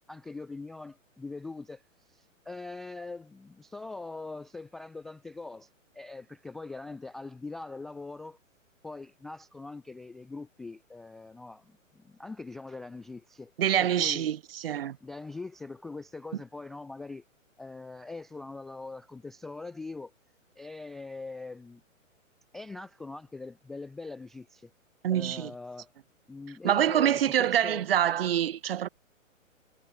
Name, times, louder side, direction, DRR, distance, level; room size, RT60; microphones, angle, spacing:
voice 1, 0.1-1.8 2.1-5.7 5.9-8.4 8.8-13.5 13.8-14.3 15.0-17.2 17.6-20.1 20.6-21.8 22.5-24.7 25.1-25.9 26.3-27.9, left 3 dB, ahead, 0.4 m, -42 dB
voice 2, 13.6-15.0 25.0-25.5 26.6-28.9, right 10 dB, 45° right, 1.1 m, -26 dB
figure-of-eight pair, 125°, 40 cm